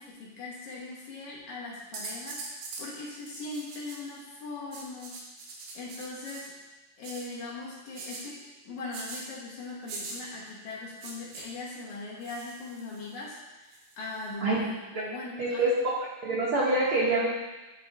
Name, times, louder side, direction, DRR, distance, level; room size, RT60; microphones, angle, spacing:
voice 1, 0.0-5.2 5.7-6.5 7.0-15.7, left 3 dB, 65° left, -5 dB, 2.5 m, -40 dB
sound 1, 1.9-2.9 3.2-4.2 4.7-6.4 7.0-7.3 7.9-8.2 8.9-9.2 9.9-10.2 11.0-11.4 12.2-13.1 13.7-14.3, right 3 dB, 85° right, 2.7 m, -42 dB
voice 2, 15.4-15.7 16.2-17.3, right 2 dB, 60° right, -8 dB, 1.6 m, -25 dB
10.5 x 3.8 x 3.5 m, 1.1 s
omnidirectional pair, 3.8 m